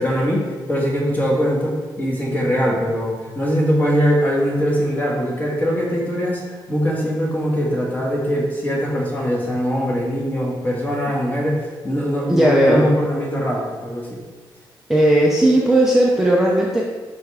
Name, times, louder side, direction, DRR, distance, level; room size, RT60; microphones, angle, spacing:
voice 1, 0.0-14.2, equal, 20° left, -3 dB, 1.6 m, -22 dB
voice 2, 12.3-12.9 14.9-16.8, right 1 dB, 5° right, -4 dB, 0.6 m, -15 dB
10.5 x 3.5 x 3.4 m, 1.3 s
wide cardioid pair, 155°, 8 cm